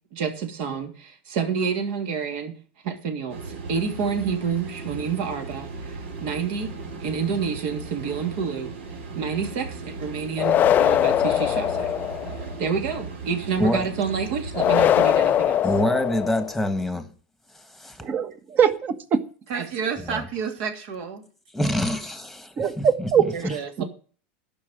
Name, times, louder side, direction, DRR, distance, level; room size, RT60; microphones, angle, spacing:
voice 1, 0.1-2.5 2.8-5.7 6.2-6.7 7.0-8.7 9.1-11.9 12.6-15.7 19.5-21.2 23.3-23.8, right 6 dB, 60° right, 2.9 m, -28 dB
sound 1, 3.3-15.1, right 4 dB, 75° right, 3.7 m, -37 dB
sound 2, 10.4-12.4 14.5-16.6, left 11 dB, 30° left, 0.5 m, -21 dB
voice 2, 15.6-17.1 17.5-18.0 20.0-20.3 21.5-23.6, left 1 dB, ahead, 1.5 m, -26 dB
voice 3, 18.0-19.2 22.6-23.2 23.8-23.9, right 7 dB, 30° right, 1.4 m, -21 dB
12.0 x 5.9 x 8.9 m
supercardioid pair, 135°, 6 cm